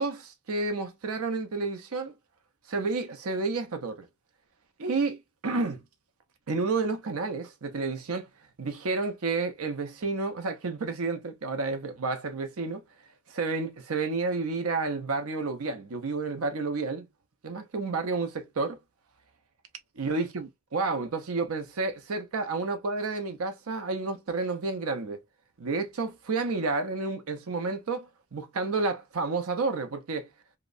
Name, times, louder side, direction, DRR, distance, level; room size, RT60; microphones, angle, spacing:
voice 1, 0.0-2.2 2.7-4.1 4.8-5.8 6.5-8.3 8.6-12.8 13.3-17.1 17.4-18.8 20.0-25.2 25.6-30.3, right 3 dB, 70° right, 0.7 m, -30 dB
2.8 x 2.1 x 2.4 m
head